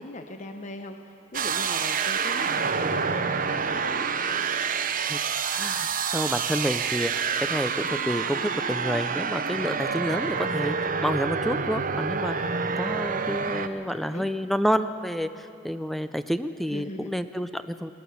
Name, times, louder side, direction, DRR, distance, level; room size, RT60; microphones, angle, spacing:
voice 1, 0.0-4.1 9.6-9.9 13.9-14.3 16.7-17.2, left 2 dB, 40° left, 6 dB, 0.8 m, -40 dB
sound 1, 1.3-13.7, right 5 dB, 45° right, 0.8 m, -28 dB
voice 2, 5.5-5.9 6.1-17.9, equal, ahead, 11 dB, 0.4 m, -29 dB
21.0 x 18.0 x 7.0 m, 3.0 s
head